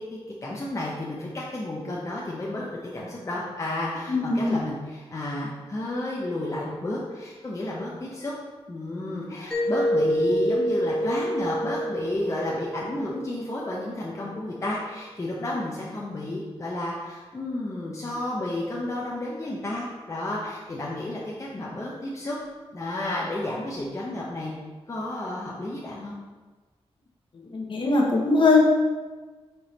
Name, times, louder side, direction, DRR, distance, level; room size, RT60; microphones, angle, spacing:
voice 1, 0.0-8.3 8.7-22.4 22.7-24.5 24.9-26.1, left 1 dB, 30° left, -5 dB, 0.7 m, -31 dB
voice 2, 4.1-4.6 27.5-28.6, left 3 dB, 50° left, -1 dB, 1.2 m, -20 dB
Mallet percussion, 9.5-14.1, equal, 5° left, 1.1 m, -27 dB
5.1 x 4.4 x 4.2 m, 1.3 s
wide cardioid pair, 150°, 11 cm